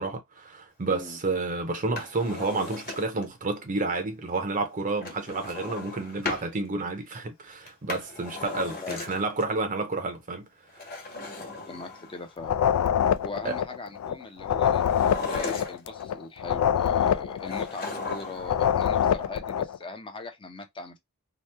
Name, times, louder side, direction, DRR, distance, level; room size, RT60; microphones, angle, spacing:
voice 1, 0.0-10.5 13.4-13.6, right 3 dB, 35° right, 0.6 m, -30 dB
Drawer open or close, 1.8-3.3 5.0-6.5 7.6-9.4 10.7-12.3 14.8-16.0 17.5-18.6 18.8-18.9, left 3 dB, 45° left, 1.2 m, -37 dB
voice 2, 11.7-12.6 13.2-14.8 15.3-21.0, left 3 dB, 25° left, 0.5 m, -40 dB
sound 1, 12.4-14.1 14.4-18.1 18.4-19.8, left 9 dB, 85° left, 0.3 m, -25 dB
2.9 x 2.1 x 3.3 m
head